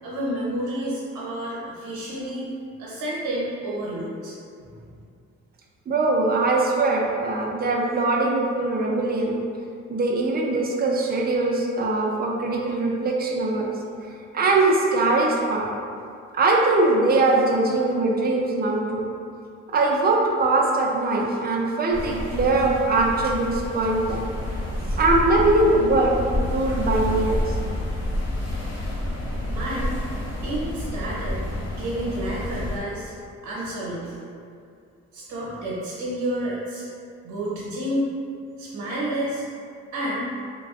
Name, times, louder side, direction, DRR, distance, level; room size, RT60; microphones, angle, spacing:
voice 1, 0.0-2.5 2.8-4.3 4.6-4.8 29.5-30.0 30.4-31.4 31.7-33.1 33.4-34.2 35.1-36.9 37.2-38.1 38.6-39.4 39.9-40.3, right 1 dB, 80° right, -7 dB, 0.8 m, -30 dB
voice 2, 5.9-9.3 9.9-13.7 14.3-15.7 16.3-19.0 19.7-24.3 24.9-27.6, right 2 dB, 30° right, -1 dB, 0.4 m, -21 dB
sound 1, 21.9-32.8, left 1 dB, 55° left, 1.1 m, -29 dB
3.3 x 2.2 x 2.4 m, 2.4 s
cardioid pair, 90°, 30 cm